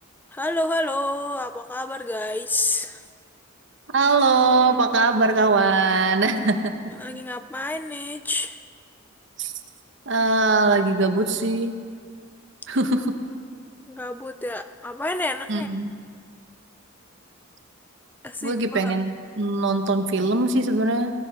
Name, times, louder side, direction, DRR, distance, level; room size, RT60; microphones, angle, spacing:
voice 1, 0.3-3.0 7.0-8.6 13.9-15.7 18.2-19.0, left 2 dB, 10° left, 9 dB, 0.3 m, -29 dB
voice 2, 3.9-6.7 9.4-9.5 10.1-11.8 12.7-13.2 15.5-15.9 18.4-21.1, right 3 dB, 60° right, 7 dB, 1.0 m, -21 dB
18.0 x 12.0 x 5.7 m, 2.1 s
head